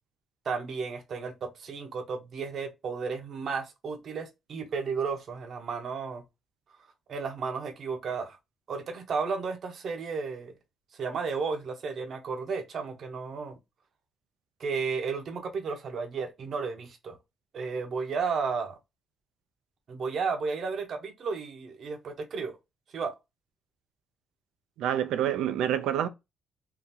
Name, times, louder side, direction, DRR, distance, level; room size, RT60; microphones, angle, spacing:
voice 1, 0.4-6.2 7.1-8.4 8.7-10.5 11.0-13.6 14.6-17.2 17.5-18.7 19.9-22.6 22.9-23.1, right 5 dB, 60° right, 0.9 m, -33 dB
voice 2, 24.8-26.1, right 10 dB, 85° right, 0.4 m, -27 dB
3.9 x 2.4 x 2.7 m
cardioid pair, 90°, 0 cm